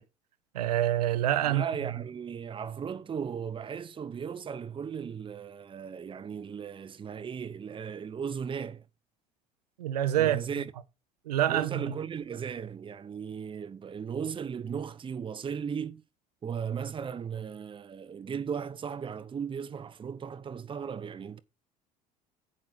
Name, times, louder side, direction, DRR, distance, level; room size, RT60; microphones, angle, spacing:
voice 1, 0.5-1.6 9.8-10.4 11.2-11.8, right 12 dB, 75° right, 0.9 m, -26 dB
voice 2, 1.4-8.9 10.2-10.7 11.5-16.0 16.4-21.4, right 7 dB, 25° right, 0.9 m, -36 dB
10.5 x 8.7 x 4.0 m
figure-of-eight pair, 60°, 20 cm